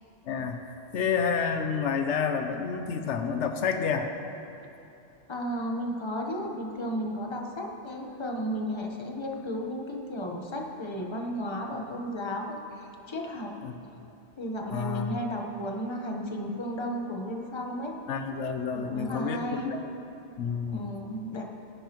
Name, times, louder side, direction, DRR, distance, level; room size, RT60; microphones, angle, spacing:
voice 1, 0.3-0.6 0.9-4.1 13.6-13.8 14.7-15.2 18.1-19.8 20.4-20.8, left 6 dB, 75° left, 6 dB, 1.0 m, -29 dB
voice 2, 5.3-13.5 14.4-17.9 18.7-19.7 20.7-21.4, equal, 25° left, 1 dB, 1.1 m, -34 dB
19.0 x 10.5 x 3.0 m, 2.9 s
omnidirectional pair, 1.2 m